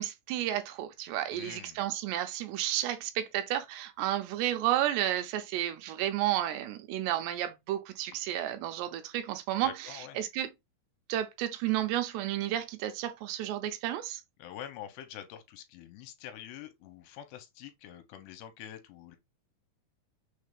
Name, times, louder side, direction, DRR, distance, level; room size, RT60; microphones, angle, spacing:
voice 1, 0.0-10.5 11.1-14.2, right 12 dB, 85° right, 2.7 m, -32 dB
voice 2, 1.3-1.8 9.6-10.2 14.4-19.2, left 10 dB, 85° left, 2.7 m, -46 dB
6.4 x 2.4 x 3.4 m
omnidirectional pair, 5.0 m